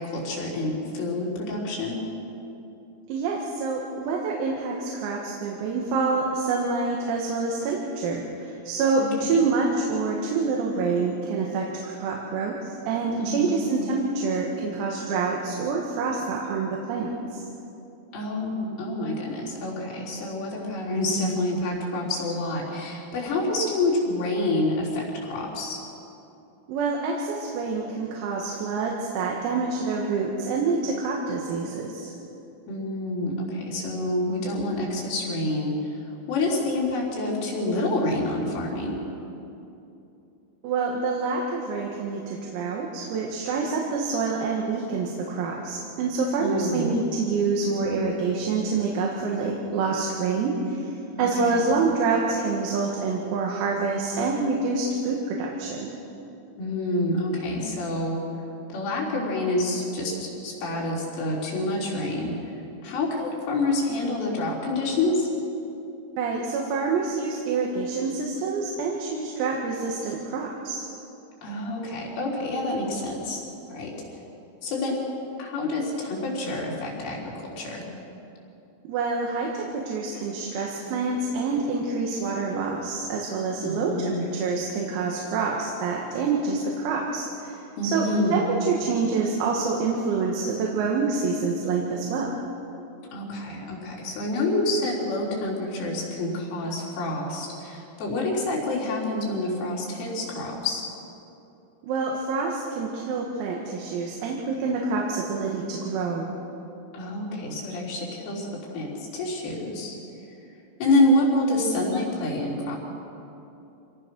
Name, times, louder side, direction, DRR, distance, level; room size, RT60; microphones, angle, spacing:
voice 1, 0.0-2.0 9.0-9.4 13.2-13.6 18.1-25.8 32.7-35.8 36.3-39.0 46.4-46.9 51.2-51.6 56.6-58.2 58.7-62.4 62.8-65.3 71.4-73.4 73.7-73.9 74.6-75.0 75.4-77.8 83.6-84.2 87.8-88.4 93.1-100.9 106.9-108.5 108.7-109.9 110.8-112.8, left 2 dB, 70° left, -4 dB, 6.3 m, -27 dB
voice 2, 3.1-17.4 26.7-32.1 40.6-55.9 66.2-70.9 78.8-92.3 101.8-106.4, right 4 dB, 85° right, -1 dB, 4.5 m, -27 dB
26.5 x 18.5 x 6.3 m, 2.8 s
omnidirectional pair, 6.0 m